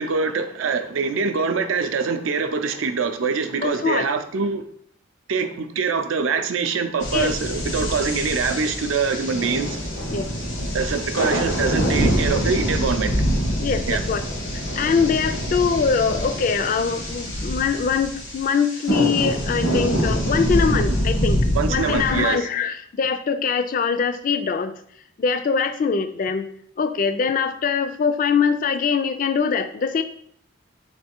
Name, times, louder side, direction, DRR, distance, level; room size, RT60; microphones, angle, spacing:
voice 1, 0.0-4.6 5.3-9.7 10.7-13.1 13.9-14.0 21.5-22.5, right 5 dB, 80° right, 0.4 m, -24 dB
voice 2, 3.6-4.1 7.1-7.3 10.1-10.3 13.6-14.2 14.8-21.4 21.7-24.7 25.2-26.5 26.8-30.0, left 5 dB, 40° left, 0.3 m, -22 dB
sound 1, 7.0-22.3, equal, 90° left, 1.4 m, -25 dB
3.3 x 3.1 x 4.3 m
head